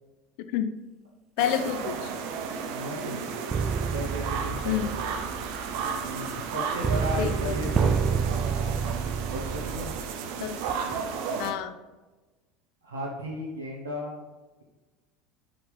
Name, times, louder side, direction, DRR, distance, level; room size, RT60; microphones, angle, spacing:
voice 1, 0.4-0.7 1.4-2.1 4.6-5.0 7.2-7.7 10.4-10.6 11.4-11.8, left 10 dB, 60° left, 10 dB, 0.5 m, -29 dB
sound 1, 1.4-11.5, right 6 dB, 65° right, 0.8 m, -33 dB
voice 2, 2.7-3.4 3.9-5.4 6.0-8.7 9.3-9.9 12.8-14.2, equal, 85° right, -4 dB, 1.2 m, -36 dB
sound 2, 3.5-10.1 10.7-11.0, right 6 dB, 30° right, 0.4 m, -29 dB
5.8 x 5.1 x 5.6 m, 1.2 s
hypercardioid pair, 75°, 0 cm